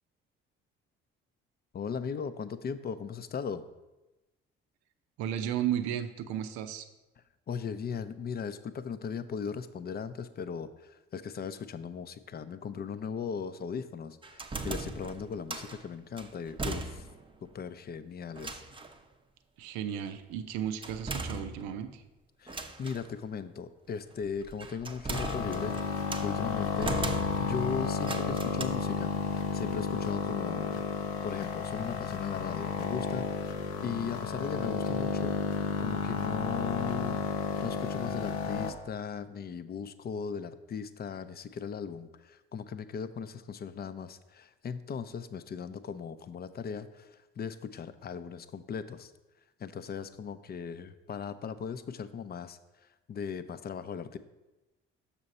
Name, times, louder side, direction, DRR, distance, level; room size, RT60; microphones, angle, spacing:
voice 1, 1.7-3.7 7.5-17.1 17.4-18.6 22.4-25.8 26.2-26.9 27.4-30.8 31.2-35.3 35.8-37.2 37.6-49.1 49.6-52.6 53.1-54.2, left 6 dB, 35° left, 12 dB, 0.5 m, -38 dB
voice 2, 5.2-6.9 19.6-22.0, right 10 dB, 70° right, 9 dB, 0.6 m, -34 dB
sound 1, 14.2-15.8 16.2-17.3 17.6-17.7 18.3-19.0 20.8-21.9 22.5-23.1 24.2-26.3 26.8-27.6 28.0-28.6, right 3 dB, 20° right, 0.6 m, -38 dB
sound 2, 25.1-38.7, left 6 dB, 85° left, 0.6 m, -32 dB
6.7 x 5.5 x 4.1 m, 1.1 s
hypercardioid pair, 50°, 29 cm